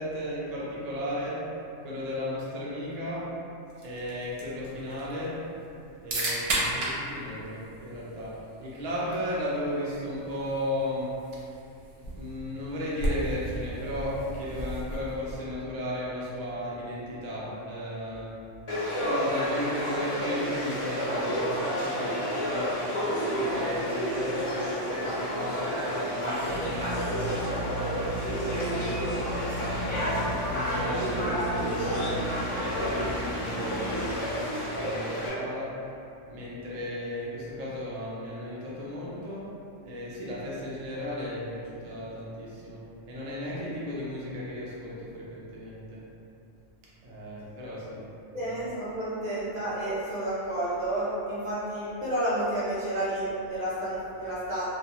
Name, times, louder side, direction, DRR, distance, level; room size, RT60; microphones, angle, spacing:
voice 1, 0.0-1.5 1.8-3.4 3.8-5.5 6.0-11.4 12.1-18.4 19.0-22.8 23.2-29.1 29.5-35.9 36.3-39.6 39.8-46.0 47.0-48.1 48.4-48.5, equal, 55° right, -6 dB, 0.4 m, -35 dB
sound 1, 3.7-15.6, right 1 dB, 75° right, 0.9 m, -36 dB
Conversation / Crowd, 18.7-35.3, equal, 40° left, 0.4 m, -30 dB
Drill, 26.4-35.0, right 1 dB, 70° left, 0.8 m, -36 dB
voice 2, 48.3-54.6, right 1 dB, 30° right, -10 dB, 0.7 m, -30 dB
2.3 x 2.2 x 2.8 m, 2.6 s
omnidirectional pair, 1.3 m